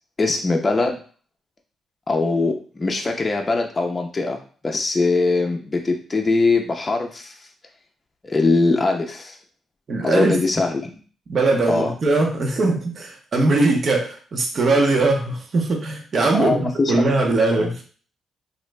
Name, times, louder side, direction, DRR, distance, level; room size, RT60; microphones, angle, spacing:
voice 1, 0.2-1.0 2.1-4.4 4.6-7.3 8.2-9.4 10.0-10.9 11.7-11.9 16.3-17.7, left 3 dB, 25° left, 2 dB, 0.5 m, -22 dB
voice 2, 9.9-10.4 11.3-16.6 16.9-17.8, right 3 dB, 50° right, 2 dB, 0.8 m, -20 dB
3.0 x 2.4 x 3.3 m, 0.41 s
cardioid pair, 90°, 0 cm